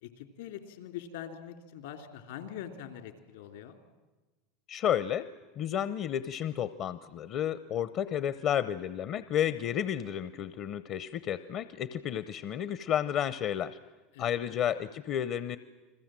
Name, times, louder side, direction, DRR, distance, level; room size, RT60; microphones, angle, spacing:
voice 1, 0.0-3.8 14.1-14.6, left 9 dB, 80° left, 7 dB, 2.9 m, -43 dB
voice 2, 4.7-5.3 5.6-13.8 14.2-15.6, left 10 dB, 50° left, 14 dB, 0.7 m, -31 dB
30.0 x 21.5 x 7.6 m, 1.2 s
hypercardioid pair, 100°, 0 cm